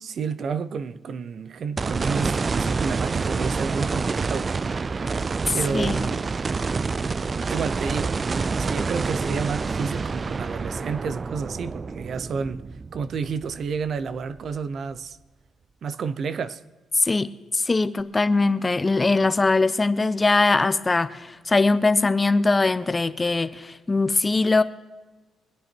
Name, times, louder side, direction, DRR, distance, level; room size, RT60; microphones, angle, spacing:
voice 1, 0.0-4.6 5.5-6.4 7.5-8.2 8.6-12.6 12.9-15.2 15.8-16.6, right 5 dB, 55° right, 0.7 m, -30 dB
sound 1, 1.8-14.1 14.6-14.7 18.0-18.1, right 4 dB, 35° right, 0.3 m, -27 dB
voice 2, 5.5-6.0 17.0-24.6, left 3 dB, 20° left, 0.8 m, -21 dB
24.0 x 8.8 x 4.5 m
cardioid pair, 90°, 0 cm